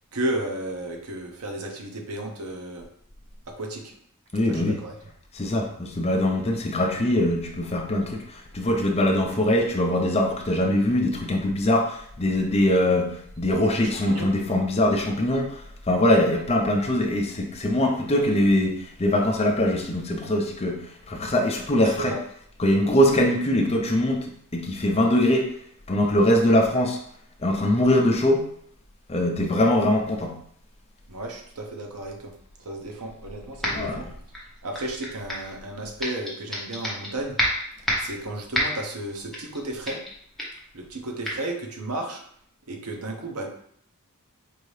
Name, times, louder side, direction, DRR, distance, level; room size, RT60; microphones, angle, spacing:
voice 1, 0.1-2.9 3.6-3.9 4.5-4.9 13.8-14.3 21.8-22.2 31.1-32.3 32.6-34.0 34.6-37.3 38.0-40.0 40.7-42.2 42.7-43.5, right 1 dB, 85° right, 2 dB, 0.9 m, -33 dB
voice 2, 4.3-4.8 5.3-22.2 22.6-25.5 25.9-27.0 27.4-28.5 29.1-30.4 33.7-34.0, left 1 dB, 30° left, 2 dB, 0.5 m, -22 dB
sound 1, 33.6-34.0 34.3-35.5 36.0-37.1 37.4-38.2 38.5-38.9 39.3-39.6 39.9-40.1 40.4-40.6 41.2-41.4, equal, ahead, 0.9 m, -28 dB
4.6 x 2.7 x 3.2 m, 0.64 s
head